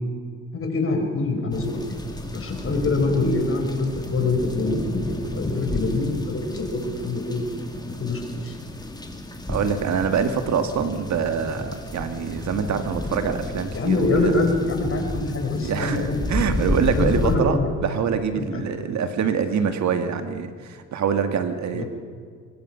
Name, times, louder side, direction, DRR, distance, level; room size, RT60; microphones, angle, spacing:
voice 1, 0.5-2.0 2.3-7.4 8.0-8.5 13.7-16.2 16.9-17.7 18.5-18.6 21.7-21.9, left 3 dB, 45° left, 3 dB, 4.8 m, -25 dB
sound 1, 1.5-17.4, left 2 dB, 15° left, 2.7 m, -31 dB
voice 2, 9.5-14.3 15.6-21.8, right 7 dB, 65° right, 8 dB, 1.8 m, -25 dB
24.5 x 21.0 x 5.7 m, 2.1 s
cardioid pair, 90°, 30 cm